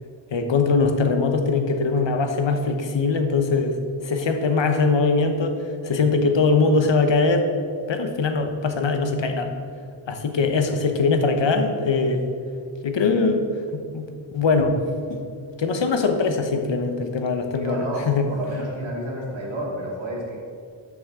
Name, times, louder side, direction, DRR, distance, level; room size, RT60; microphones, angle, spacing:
voice 1, 0.3-3.8 4.0-5.6 5.8-7.5 7.9-9.5 10.1-12.2 12.8-13.4 13.7-14.8 15.1-15.2 15.6-18.3, left 4 dB, 70° left, 6 dB, 1.0 m, -21 dB
voice 2, 17.6-20.4, right 1 dB, 75° right, -3 dB, 2.2 m, -31 dB
12.5 x 6.1 x 3.7 m, 2.3 s
wide cardioid pair, 105°, 46 cm